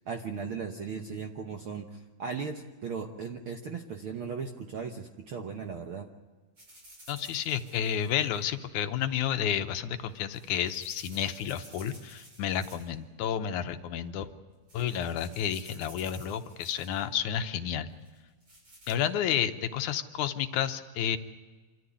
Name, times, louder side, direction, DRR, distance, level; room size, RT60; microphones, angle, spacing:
voice 1, 0.1-6.1, right 5 dB, 65° right, 4 dB, 1.3 m, -37 dB
sound 1, 6.6-8.5 10.0-13.0 13.3-13.7 14.3-14.4 14.7-17.1 18.1-18.9, right 1 dB, 40° right, 7.6 m, -53 dB
voice 2, 7.1-14.3 14.7-17.9 18.9-21.2, left 9 dB, 75° left, 8 dB, 2.2 m, -31 dB
26.5 x 13.5 x 9.7 m, 1.4 s
omnidirectional pair, 3.7 m